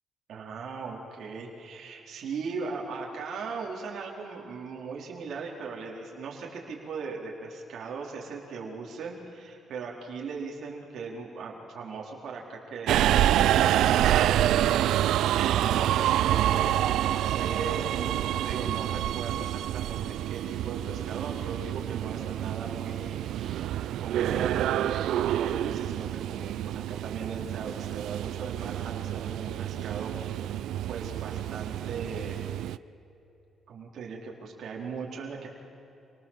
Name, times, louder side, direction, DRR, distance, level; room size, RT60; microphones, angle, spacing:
voice 1, 0.3-14.9 15.5-30.1 30.5-30.6 30.9-32.5 33.7-35.5, right 4 dB, 65° right, -2 dB, 4.2 m, -38 dB
Subway metro underground, 12.9-32.8, right 12 dB, 80° right, 0.5 m, -27 dB
27.5 x 19.0 x 7.5 m, 2.8 s
cardioid pair, 90°, 0 cm